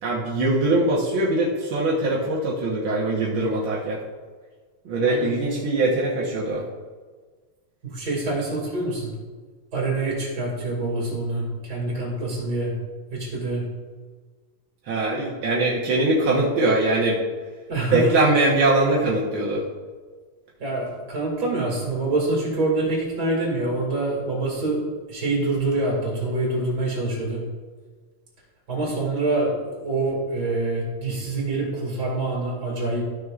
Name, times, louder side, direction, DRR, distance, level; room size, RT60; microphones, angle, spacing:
voice 1, 0.0-4.0 4.8-6.6 14.8-17.2 17.9-19.6, right 2 dB, 70° right, -5 dB, 1.2 m, -22 dB
voice 2, 5.0-5.3 7.8-9.1 9.7-12.8 13.1-13.6 17.7-18.1 20.6-24.8 25.1-27.4 28.7-33.0, right 2 dB, 30° right, -3 dB, 2.5 m, -26 dB
13.5 x 6.5 x 2.5 m, 1.4 s
omnidirectional pair, 4.0 m